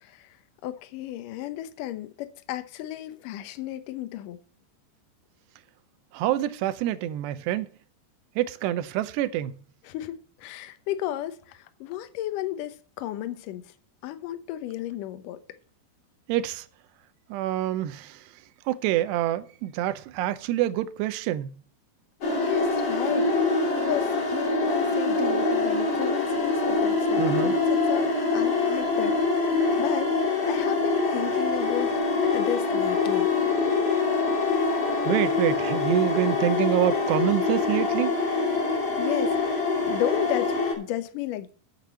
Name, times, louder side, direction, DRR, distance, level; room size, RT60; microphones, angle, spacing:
voice 1, 0.6-4.4 9.8-13.6 14.0-15.4 22.4-31.9 32.2-33.3 39.0-39.4 39.8-41.5, left 13 dB, 75° left, 2.0 m, -33 dB
voice 2, 6.1-7.7 8.4-9.6 16.3-16.7 17.3-18.2 18.7-21.5 27.2-27.6 35.1-38.1, right 13 dB, 85° right, 2.8 m, -26 dB
sound 1, 22.2-40.7, left 3 dB, 40° left, 3.5 m, -25 dB
9.1 x 6.7 x 6.9 m
omnidirectional pair, 4.8 m